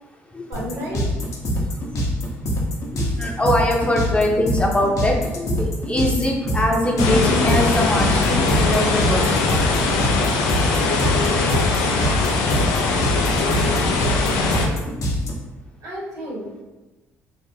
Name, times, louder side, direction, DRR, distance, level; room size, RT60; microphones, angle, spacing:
sound 1, 0.5-15.3, equal, 50° left, 0.8 m, -24 dB
voice 1, 0.5-1.0 15.8-16.6, equal, 70° right, -5 dB, 1.4 m, -32 dB
voice 2, 2.9-9.3, left 1 dB, 20° left, -1 dB, 0.7 m, -22 dB
sound 2, 7.0-14.7, left 3 dB, 80° left, 0.4 m, -20 dB
3.2 x 2.0 x 3.1 m, 1.1 s
hypercardioid pair, 55°, 7 cm